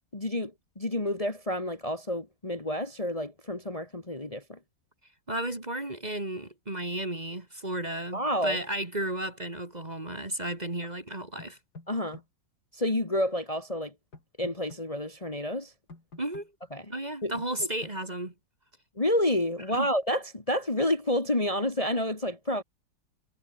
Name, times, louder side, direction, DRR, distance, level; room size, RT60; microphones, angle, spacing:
voice 1, 0.1-4.6 8.1-8.6 11.9-12.2 12.7-13.9 14.4-15.7 16.7-16.9 17.2-17.3 19.0-22.6, left 1 dB, 20° left, 2.0 m, -29 dB
voice 2, 5.3-11.6 16.2-16.5 16.9-18.3 19.7-19.9, right 1 dB, 25° right, 2.4 m, -33 dB
sound 1, 11.4-12.3 14.1-14.8 15.9-16.5 17.4-18.0, left 3 dB, 60° left, 5.0 m, -47 dB
omnidirectional pair, 1.9 m